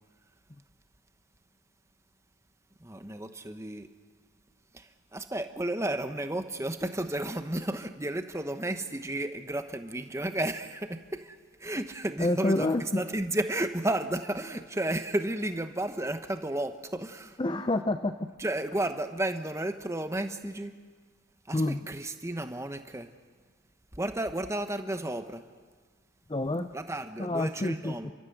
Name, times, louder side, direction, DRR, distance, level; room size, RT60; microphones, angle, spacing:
voice 1, 2.8-3.9 4.7-17.4 18.4-20.7 21.4-23.1 23.9-25.4 26.7-28.1, right 1 dB, 15° right, 8 dB, 1.0 m, -33 dB
voice 2, 12.2-13.0 17.4-18.1 21.5-21.8 26.3-26.7 27.2-28.1, left 2 dB, 25° left, 8 dB, 0.6 m, -28 dB
30.0 x 13.5 x 7.9 m, 1.5 s
head